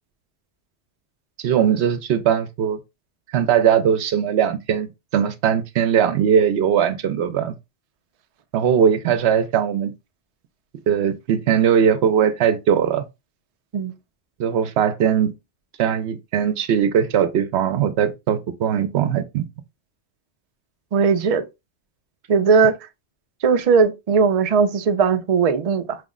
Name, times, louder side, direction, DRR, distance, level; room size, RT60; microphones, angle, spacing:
voice 1, 1.4-2.8 3.3-7.6 8.5-9.9 10.9-13.1 14.4-15.3 15.8-19.5, right 8 dB, 70° right, 0.8 m, -20 dB
voice 2, 20.9-21.4 22.3-22.7 23.4-26.0, right 5 dB, 55° right, 0.4 m, -18 dB
5.0 x 2.0 x 3.6 m
omnidirectional pair, 1.2 m